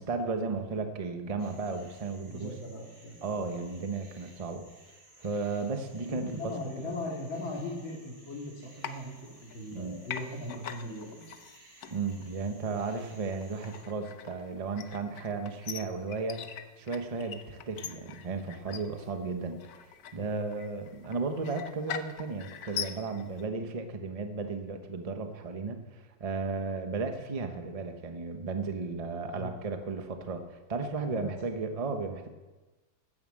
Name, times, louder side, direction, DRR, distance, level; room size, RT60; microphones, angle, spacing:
voice 1, 0.0-2.5 3.2-4.7 5.2-6.9 9.7-10.0 11.9-19.6 20.1-32.3, right 4 dB, 25° right, 6 dB, 0.8 m, -34 dB
sound 1, 1.4-13.8, right 2 dB, 75° right, 4.0 m, -58 dB
voice 2, 2.3-3.3 6.0-11.3 20.2-20.3 29.2-29.5 31.0-31.3, left 1 dB, 75° left, -1 dB, 3.1 m, -39 dB
sound 2, 8.8-9.8 10.1-23.4, left 8 dB, 60° left, 1.1 m, -43 dB
13.5 x 9.4 x 7.7 m, 1.2 s
omnidirectional pair, 2.2 m